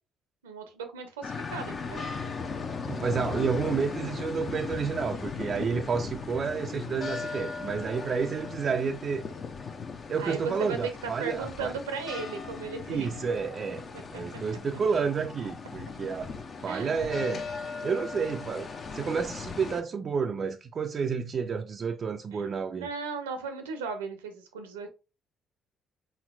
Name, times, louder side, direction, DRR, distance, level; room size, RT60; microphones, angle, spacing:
voice 1, 0.4-2.0 10.2-13.1 14.3-14.4 16.7-17.1 22.3-22.4 22.7-24.9, right 5 dB, 75° right, 0.7 m, -36 dB
sound 1, 1.2-19.8, left 5 dB, 40° left, 0.7 m, -38 dB
voice 2, 2.7-9.2 10.1-11.7 12.9-13.8 14.1-16.3 16.6-17.4 17.8-22.9, right 5 dB, 40° right, 0.4 m, -30 dB
4.2 x 3.9 x 2.4 m
figure-of-eight pair, 45°, 0 cm